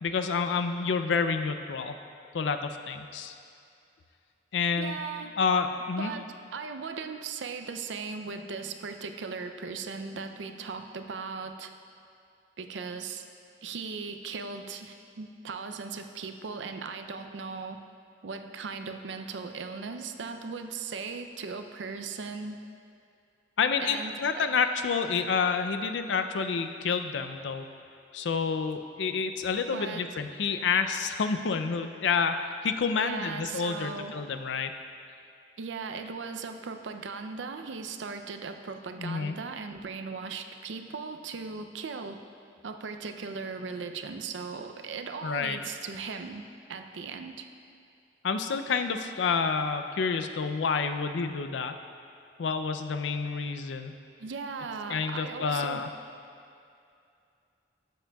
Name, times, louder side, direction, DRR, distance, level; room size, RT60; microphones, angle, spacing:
voice 1, 0.0-2.0 2.3-3.4 4.5-5.0 5.4-6.1 23.6-27.7 28.1-34.7 39.0-39.4 45.2-45.6 48.2-51.7 52.4-53.9 54.9-55.9, left 5 dB, 75° left, 8 dB, 0.4 m, -29 dB
voice 2, 4.8-5.4 6.0-11.7 12.6-13.3 13.6-17.8 18.2-22.6 23.8-24.5 29.7-30.1 33.0-34.1 35.6-42.2 42.6-47.5 54.2-55.9, right 4 dB, 75° right, 7 dB, 0.5 m, -38 dB
12.5 x 7.3 x 2.3 m, 2.5 s
head